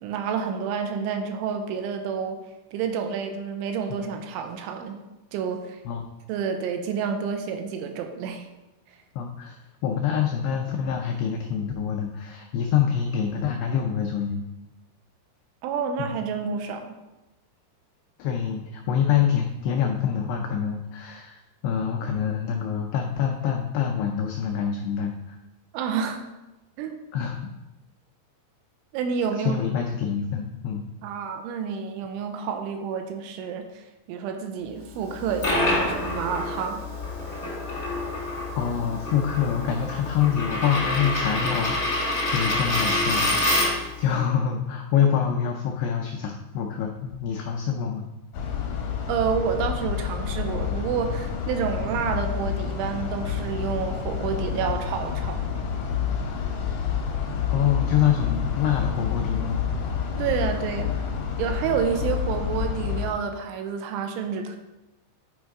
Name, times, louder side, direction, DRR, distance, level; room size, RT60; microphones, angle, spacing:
voice 1, 0.0-2.4 2.7-5.0 5.3-5.8 6.3-8.5 8.9-9.0 15.6-17.0 25.7-26.2 26.8-27.0 28.9-29.6 31.0-36.9 49.1-55.4 60.2-61.0 61.4-64.6, right 6 dB, 85° right, 5 dB, 3.1 m, -29 dB
voice 2, 9.2-14.4 16.0-16.1 18.2-25.4 27.1-27.5 29.4-30.9 38.5-48.1 57.5-59.7, left 8 dB, 90° left, 2 dB, 2.3 m, -26 dB
Coin (dropping), 35.1-43.9, left 1 dB, 45° left, 1.0 m, -27 dB
sound 1, 48.3-63.1, left 7 dB, 75° left, 2.1 m, -29 dB
9.3 x 4.3 x 4.8 m, 1.0 s
omnidirectional pair, 5.5 m